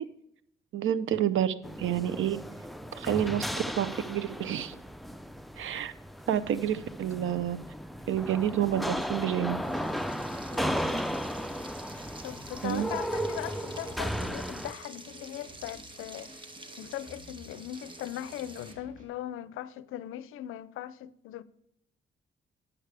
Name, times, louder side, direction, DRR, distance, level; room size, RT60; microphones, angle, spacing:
voice 1, 0.7-2.4 2.9-4.7 5.6-5.9 6.3-7.6 8.1-9.6 12.6-12.9, right 10 dB, 75° right, 0.6 m, -29 dB
sound 1, 1.6-14.7, equal, ahead, 0.5 m, -35 dB
Frying (food), 9.6-18.7, right 2 dB, 25° right, 1.2 m, -49 dB
sound 2, 10.3-19.0, equal, 40° right, 2.6 m, -52 dB
voice 2, 12.2-16.3 16.8-21.4, left 12 dB, 90° left, 0.4 m, -39 dB
9.7 x 8.1 x 3.3 m
cardioid pair, 75°, 21 cm